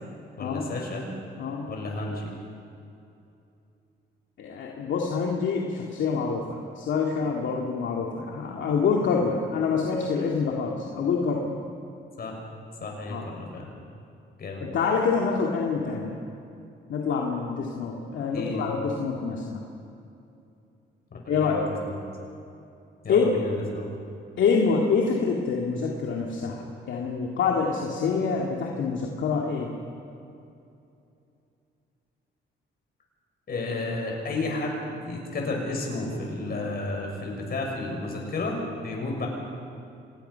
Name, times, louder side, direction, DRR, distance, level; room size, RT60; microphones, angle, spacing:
voice 1, 0.4-1.1 1.7-2.3 12.2-12.4 12.8-13.7 14.4-14.6 18.2-18.7 21.1-22.0 23.0-23.9 33.5-39.3, left 2 dB, 50° left, 0 dB, 6.8 m, -32 dB
voice 2, 4.4-11.5 13.1-13.3 14.6-16.1 16.9-19.6 21.3-21.6 23.1-23.3 24.4-29.7, left 5 dB, 70° left, -1 dB, 2.4 m, -26 dB
26.5 x 19.5 x 5.8 m, 2.7 s
cardioid pair, 90°, 20 cm